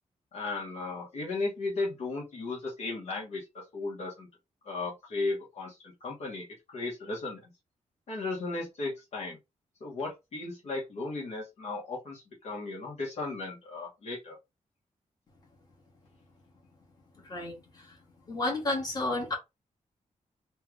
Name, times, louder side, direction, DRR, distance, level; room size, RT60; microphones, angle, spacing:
voice 1, 0.3-4.3 4.6-7.5 8.1-9.4 9.8-14.4, left 3 dB, 55° left, 1.2 m, -35 dB
voice 2, 18.3-19.3, left 2 dB, 30° left, 1.5 m, -30 dB
3.4 x 2.4 x 3.2 m
wide cardioid pair, 175°, 13 cm